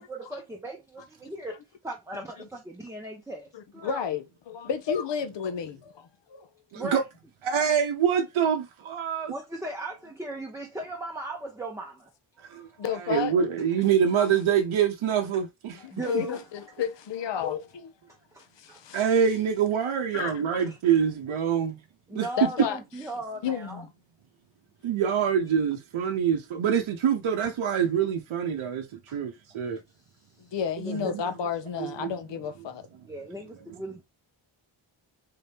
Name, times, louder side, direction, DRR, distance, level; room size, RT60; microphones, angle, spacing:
voice 1, 0.0-4.0 6.7-7.0 9.3-12.1 12.5-12.9 15.9-16.4 18.3-18.8 20.6-20.8 22.1-23.8 29.1-29.2 30.8-31.1 33.0-34.0, right 2 dB, 5° right, 0.7 m, -38 dB
voice 2, 3.5-6.0 6.3-6.5 12.8-13.5 15.8-17.9 18.6-19.0 20.1-20.4 22.4-22.8 23.4-23.9 30.5-32.8, left 8 dB, 60° left, 0.7 m, -31 dB
voice 3, 7.4-9.3 12.5-12.7 12.9-15.9 16.1-16.2 18.9-21.8 22.1-22.5 24.8-28.9 29.1-29.8 30.9-31.2 31.8-32.1, right 8 dB, 75° right, 0.7 m, -25 dB
3.8 x 2.7 x 3.4 m
wide cardioid pair, 90°, 49 cm